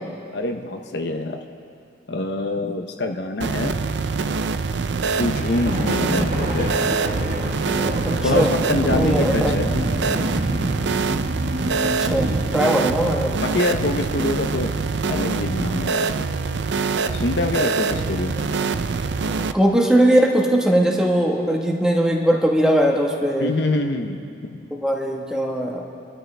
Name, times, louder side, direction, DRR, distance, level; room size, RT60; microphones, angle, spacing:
voice 1, 0.3-1.4 2.1-3.8 5.2-6.7 8.2-9.7 13.4-14.7 15.1-16.1 17.1-18.4 19.2-19.3 23.4-24.6, left 2 dB, 60° left, 4 dB, 0.8 m, -25 dB
sound 1, 3.4-19.5, right 4 dB, 65° right, 0.5 m, -24 dB
sound 2, 4.9-12.4, equal, 45° right, 1.4 m, -27 dB
voice 2, 8.0-8.5 9.0-9.6 11.8-13.3 18.5-18.6 19.5-23.5 24.7-25.8, right 1 dB, 5° right, -1 dB, 1.4 m, -20 dB
27.0 x 13.0 x 3.4 m, 2.5 s
head